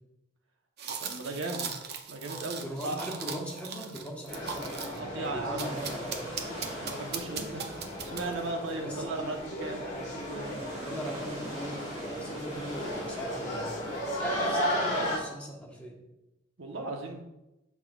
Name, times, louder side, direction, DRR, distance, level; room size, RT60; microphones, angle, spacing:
sound 1, 0.8-5.0 5.6-8.5, right 6 dB, 55° right, 0.6 m, -39 dB
voice 1, 1.0-1.6 2.1-3.0 4.8-5.9 6.8-7.8 8.0-10.5 16.6-17.2, right 2 dB, 85° right, 2 dB, 1.0 m, -37 dB
voice 2, 2.6-6.3 8.8-9.1 10.4-16.0, right 1 dB, 5° left, -4 dB, 1.3 m, -40 dB
sound 2, 4.3-15.2, equal, 35° left, 1.6 m, -35 dB
sound 3, 5.6-14.7, equal, 35° right, 2.3 m, -46 dB
7.4 x 5.9 x 2.4 m, 0.93 s
head